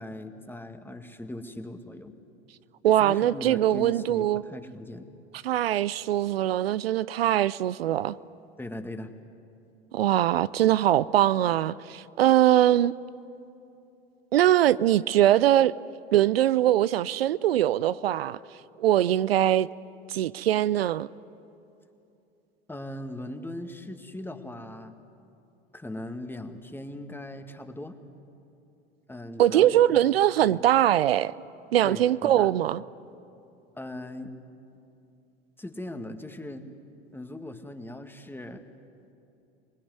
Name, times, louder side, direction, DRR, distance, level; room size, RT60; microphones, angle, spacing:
voice 1, 0.0-2.2 3.0-5.1 8.6-9.1 22.7-25.0 25.7-28.0 29.1-30.0 30.4-30.6 31.8-32.5 33.8-34.3 35.6-36.6 37.1-38.6, left 1 dB, 5° left, 1.9 m, -39 dB
voice 2, 2.8-4.4 5.4-8.2 9.9-12.9 14.3-15.7 16.1-18.4 18.8-19.7 20.1-21.1 29.4-31.3 31.7-32.8, right 12 dB, 80° right, 0.5 m, -22 dB
26.0 x 20.0 x 9.6 m
hypercardioid pair, 80°, 29 cm